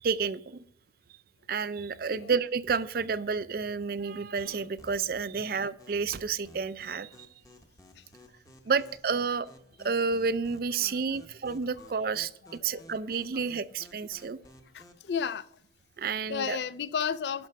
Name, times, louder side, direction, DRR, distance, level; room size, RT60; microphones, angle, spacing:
voice 1, 0.0-0.6 1.5-7.3 8.7-9.5 9.8-14.4 16.0-16.6, right 5 dB, 55° right, 0.4 m, -30 dB
sound 1, 4.5-15.1, equal, 20° left, 0.9 m, -55 dB
voice 2, 14.7-15.5 16.3-17.5, left 7 dB, 70° left, 0.4 m, -33 dB
11.0 x 6.0 x 4.6 m
head